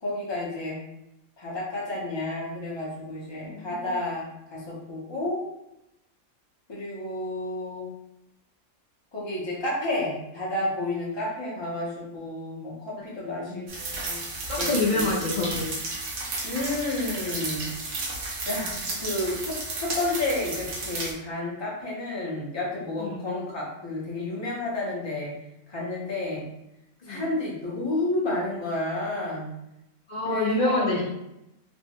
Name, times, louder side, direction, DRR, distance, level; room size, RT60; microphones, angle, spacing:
voice 1, 0.0-0.8 1.4-5.4 6.7-7.9 9.1-14.2 14.6-15.2 16.4-17.7 18.5-25.3 25.7-26.5 27.1-29.5 30.2-31.0, left 2 dB, 25° left, -5 dB, 0.6 m, -31 dB
voice 2, 3.5-3.9 13.2-13.6 14.5-15.7 23.0-23.2 27.1-27.3 30.1-31.0, left 2 dB, 70° left, -6 dB, 0.4 m, -27 dB
sound 1, 13.7-21.1, right 3 dB, 75° right, 1.1 m, -33 dB
3.2 x 2.1 x 2.8 m, 0.86 s
omnidirectional pair, 1.5 m